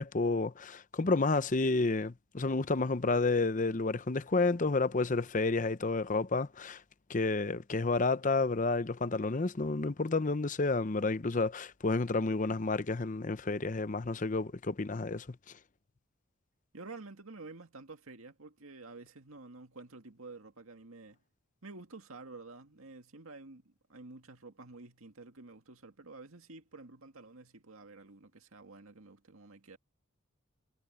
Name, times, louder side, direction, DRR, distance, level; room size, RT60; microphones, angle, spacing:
voice 1, 0.0-6.8 7.1-15.4, left 3 dB, 40° left, 0.7 m, -30 dB
voice 2, 16.7-21.2 21.6-29.8, right 3 dB, 90° right, 2.1 m, -50 dB
head